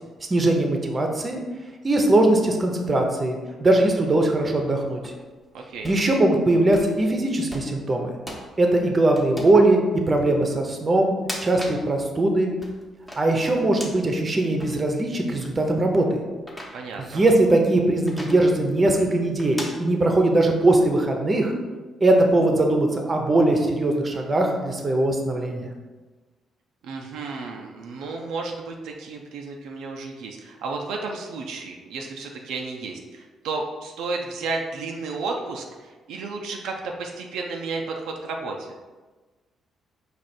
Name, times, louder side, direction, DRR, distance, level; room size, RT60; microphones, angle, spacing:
voice 1, 0.3-1.4 1.8-5.0 5.8-8.2 8.6-9.8 10.1-11.2 11.4-12.5 13.2-16.2 17.1-21.5 22.0-25.7, right 2 dB, 30° right, 3 dB, 0.7 m, -20 dB
sound 1, 4.3-5.1 5.7-6.0 6.7-7.0 7.5-7.8 8.3-8.5 9.2-9.6 10.2-10.3 11.1-11.8 12.3-14.1 14.6-14.7 15.5-15.6 16.4-17.4 18.1-18.4 19.4-19.7, equal, 5° left, 0.9 m, -37 dB
voice 2, 5.5-5.9 16.7-17.2 26.8-38.8, right 3 dB, 85° right, 1 dB, 0.5 m, -32 dB
4.8 x 2.5 x 4.2 m, 1.3 s
cardioid pair, 90°, 0 cm